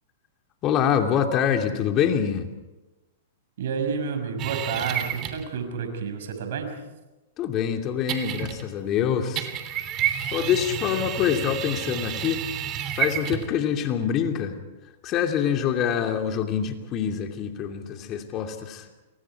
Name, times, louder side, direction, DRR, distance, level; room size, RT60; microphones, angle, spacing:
voice 1, 0.6-2.5 7.4-9.5 10.3-12.5 13.0-14.6 15.0-18.9, left 8 dB, 35° left, 4 dB, 2.8 m, -25 dB
voice 2, 3.6-6.7, right 6 dB, 70° right, 6 dB, 5.9 m, -30 dB
sound 1, 4.4-5.5 8.1-8.8 9.4-13.5, right 10 dB, 35° right, 3.3 m, -30 dB
29.5 x 24.5 x 4.9 m, 1.1 s
hypercardioid pair, 115°, 0 cm